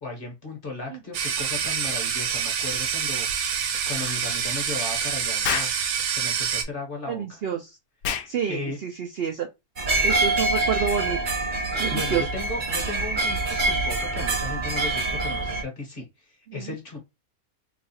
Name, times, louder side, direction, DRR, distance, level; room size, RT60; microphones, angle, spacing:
voice 1, 0.0-3.3 3.9-5.7 6.1-7.4 8.5-8.8 11.9-17.0, left 3 dB, 40° left, 1.1 m, -35 dB
sound 1, 1.1-6.6, right 7 dB, 90° right, 1.3 m, -27 dB
Explosion, 5.4-5.8 8.0-8.3, left 9 dB, 75° left, 1.0 m, -27 dB
voice 2, 7.1-7.7 8.3-9.5 10.0-11.2 11.8-12.2 16.5-16.7, right 8 dB, 70° right, 0.5 m, -28 dB
sound 2, 9.8-15.6, right 2 dB, 40° right, 0.8 m, -25 dB
3.1 x 2.4 x 4.0 m
omnidirectional pair, 1.6 m